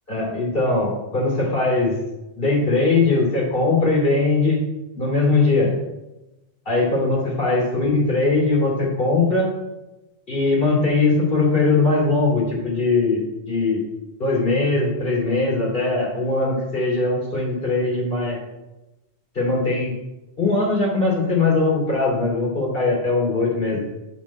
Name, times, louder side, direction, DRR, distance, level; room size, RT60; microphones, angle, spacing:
voice 1, 0.1-2.0 2.4-4.6 5.0-5.7 6.6-9.5 10.3-13.8 14.2-18.4 19.3-19.9 20.4-23.9, left 3 dB, 55° left, -3 dB, 3.1 m, -20 dB
11.0 x 4.3 x 4.3 m, 1.0 s
omnidirectional pair, 1.1 m